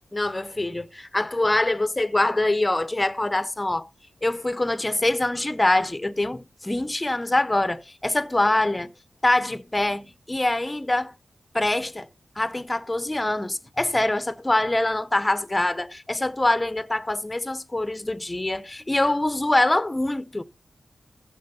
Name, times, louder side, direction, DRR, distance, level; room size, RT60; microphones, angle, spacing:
voice 1, 0.1-3.9 4.2-8.9 9.2-11.1 11.5-12.1 12.4-20.4, left 2 dB, 15° left, 0.7 m, -24 dB
15.0 x 6.1 x 6.7 m
wide cardioid pair, 135°, 0 cm